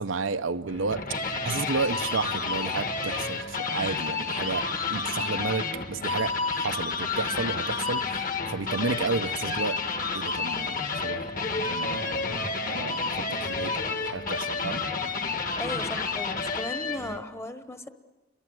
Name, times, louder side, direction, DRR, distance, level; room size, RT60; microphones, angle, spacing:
voice 1, 0.0-9.8 10.1-11.3 11.7-14.8, right 4 dB, 90° right, 0.8 m, -32 dB
sound 1, 0.7-17.2, left 4 dB, 45° left, 1.7 m, -30 dB
voice 2, 15.6-17.9, left 1 dB, 15° left, 1.2 m, -36 dB
29.0 x 23.0 x 7.9 m
head